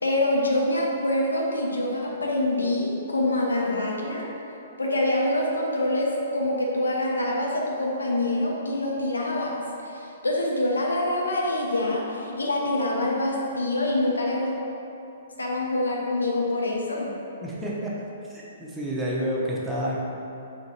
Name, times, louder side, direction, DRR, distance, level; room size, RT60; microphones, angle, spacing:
voice 1, 0.0-4.3 4.8-9.5 9.8-14.5 15.4-17.1, left 1 dB, 80° left, -2 dB, 0.7 m, -25 dB
voice 2, 17.4-17.9 18.3-20.0, equal, 5° right, -6 dB, 0.8 m, -29 dB
3.9 x 3.0 x 3.9 m, 2.8 s
figure-of-eight pair, 120°, 0 cm